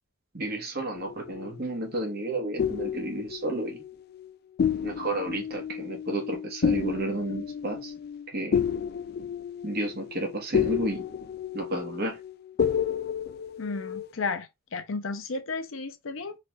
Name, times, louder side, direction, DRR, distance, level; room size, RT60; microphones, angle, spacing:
voice 1, 0.3-3.8 4.8-7.9 8.3-8.6 9.6-11.0 11.5-12.2, right 2 dB, 55° right, 1.4 m, -32 dB
sound 1, 1.0-2.0 2.6-4.3 4.6-14.1, left 7 dB, 50° left, 0.3 m, -31 dB
voice 2, 13.6-16.4, left 4 dB, 90° left, 0.7 m, -33 dB
4.0 x 2.5 x 3.1 m
head